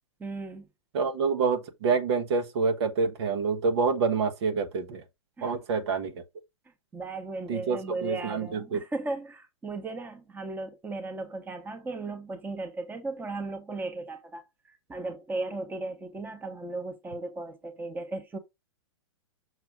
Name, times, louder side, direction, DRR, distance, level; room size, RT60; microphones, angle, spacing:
voice 1, 0.2-0.7 5.4-5.6 6.9-14.5 14.9-18.4, right 2 dB, 10° right, 1.2 m, -36 dB
voice 2, 0.9-5.0 5.4-6.1 7.5-8.8, right 5 dB, 60° right, 1.3 m, -27 dB
6.4 x 3.3 x 5.0 m
hypercardioid pair, 115°, 16 cm